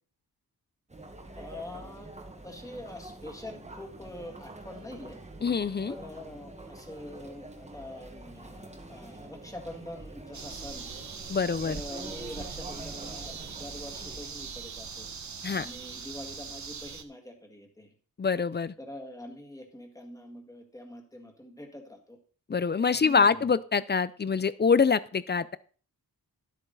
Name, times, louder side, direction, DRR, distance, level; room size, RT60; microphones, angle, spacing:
Chatter, 0.9-14.2, right 2 dB, 15° right, 1.3 m, -46 dB
voice 1, 1.4-2.1 2.4-5.2 5.9-10.9 11.6-15.1 15.6-17.9 18.8-22.2 22.9-23.5, left 1 dB, 10° left, 2 dB, 1.9 m, -44 dB
voice 2, 5.4-5.9 11.3-11.8 15.4-15.7 18.2-18.7 22.5-25.6, left 5 dB, 30° left, 17 dB, 0.4 m, -25 dB
sound 1, 10.3-17.0, right 5 dB, 50° right, 1.1 m, -41 dB
12.5 x 8.2 x 3.9 m, 0.42 s
wide cardioid pair, 165°, 38 cm